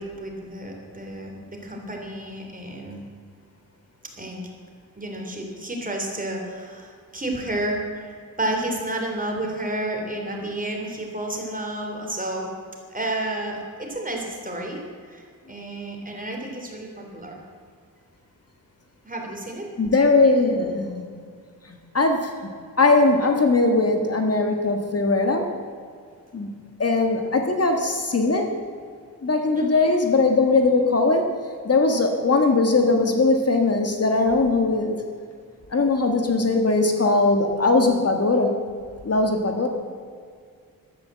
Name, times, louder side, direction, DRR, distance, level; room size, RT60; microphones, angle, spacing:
voice 1, 0.0-3.0 4.2-4.4 4.9-12.5 12.9-14.8 15.1-17.4 19.0-19.7 29.5-29.9, right 1 dB, 25° right, 1 dB, 3.2 m, -31 dB
voice 2, 19.8-21.1 21.7-22.5 22.8-25.5 26.3-26.5 26.8-28.5 29.2-31.2 31.6-35.0 35.7-38.5 39.0-39.7, left 3 dB, 45° left, 4 dB, 1.5 m, -20 dB
14.0 x 12.0 x 7.5 m, 2.1 s
wide cardioid pair, 145°, 35 cm